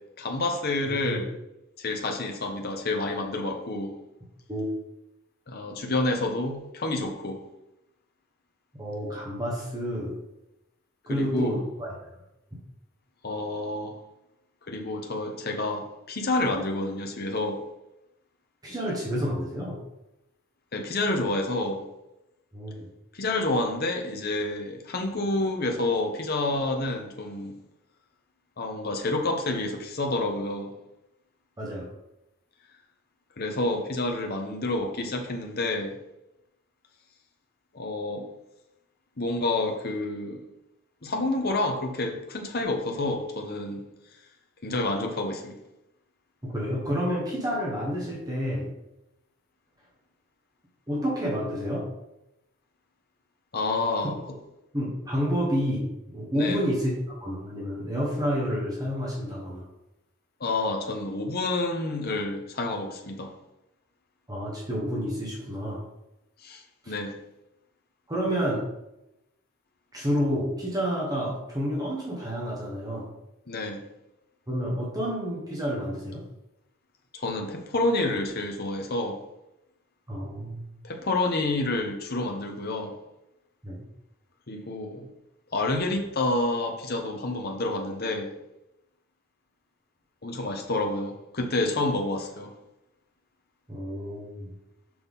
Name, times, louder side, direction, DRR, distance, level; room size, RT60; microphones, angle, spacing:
voice 1, 0.2-1.3 1.8-3.9 5.5-7.4 11.1-11.6 13.2-14.0 14.7-17.6 20.7-21.9 23.1-27.6 28.6-30.7 33.4-36.0 37.7-38.3 39.2-40.4 41.0-43.8 44.6-45.6 53.5-54.4 56.3-56.6 60.4-63.3 66.4-67.1 73.5-73.9 77.1-79.2 80.8-83.0 84.5-85.1 85.5-88.3 90.2-92.5, left 2 dB, 50° left, 3 dB, 1.0 m, -29 dB
voice 2, 0.9-1.2 4.5-4.7 8.8-10.2 11.1-11.9 18.6-19.8 22.5-22.8 31.6-31.9 46.4-48.7 50.9-51.9 54.7-59.7 64.3-65.8 66.8-66.9 68.1-68.7 69.9-73.1 74.5-76.2 80.1-80.7 83.6-83.8 93.7-94.5, equal, 20° right, -4 dB, 1.3 m, -29 dB
6.2 x 5.7 x 3.7 m, 0.90 s
head